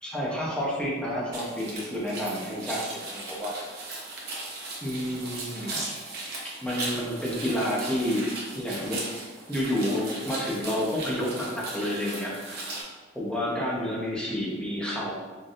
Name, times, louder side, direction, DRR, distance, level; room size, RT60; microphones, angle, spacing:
voice 1, 0.0-3.8 4.8-5.8 6.6-8.3 8.5-9.0 9.5-12.7 13.1-15.1, equal, 5° left, -5 dB, 0.8 m, -30 dB
sound 1, 1.3-12.8, right 2 dB, 60° right, 0.9 m, -37 dB
4.0 x 3.3 x 2.5 m, 1.3 s
head